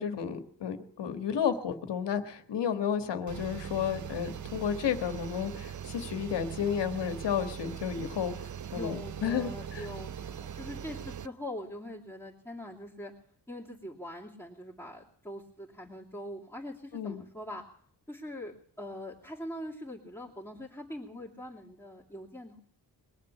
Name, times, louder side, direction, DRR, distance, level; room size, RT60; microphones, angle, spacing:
voice 1, 0.0-9.9 16.9-17.2, left 8 dB, 90° left, 8 dB, 1.6 m, -32 dB
sound 1, 3.3-11.3, right 9 dB, 45° right, 0.6 m, -41 dB
voice 2, 8.7-13.1 13.5-17.6 18.1-22.6, left 1 dB, 5° left, -6 dB, 2.6 m, -42 dB
22.0 x 7.3 x 9.0 m, 0.62 s
cardioid pair, 95°, 41 cm